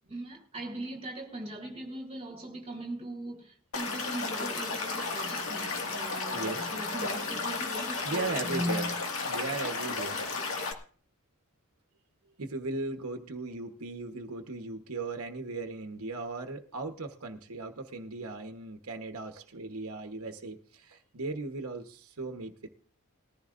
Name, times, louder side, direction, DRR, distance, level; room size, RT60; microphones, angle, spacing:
voice 1, 0.1-9.0, right 1 dB, 25° right, 3.4 m, -39 dB
Stream / Liquid, 3.7-10.7, left 3 dB, 75° left, 1.9 m, -33 dB
voice 2, 6.1-6.7 8.0-8.9 9.2-10.2 12.4-22.7, right 3 dB, 80° right, 1.1 m, -37 dB
20.0 x 14.5 x 2.5 m
head